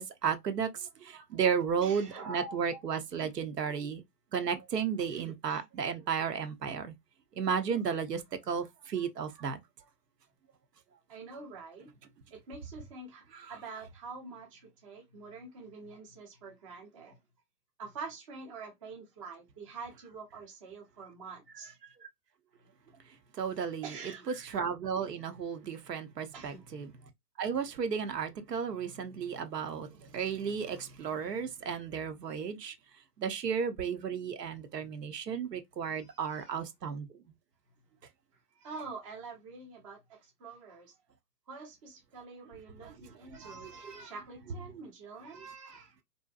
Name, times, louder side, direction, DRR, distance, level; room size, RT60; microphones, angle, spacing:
voice 1, 0.0-4.0 4.3-6.9 7.4-8.2 8.5-9.6 13.3-13.4 23.4-23.9 24.4-26.9 27.4-32.7 33.2-37.1 42.8-42.9 43.4-43.9, right 7 dB, 75° right, 0.7 m, -33 dB
voice 2, 1.8-2.9 3.6-3.8 5.1-5.6 11.1-11.9 12.3-17.2 17.8-21.7 23.8-24.3 26.3-26.8 35.9-36.6 38.6-40.9 41.5-46.0, right 4 dB, 20° right, 0.6 m, -46 dB
2.6 x 2.1 x 2.3 m
figure-of-eight pair, 130°, 49 cm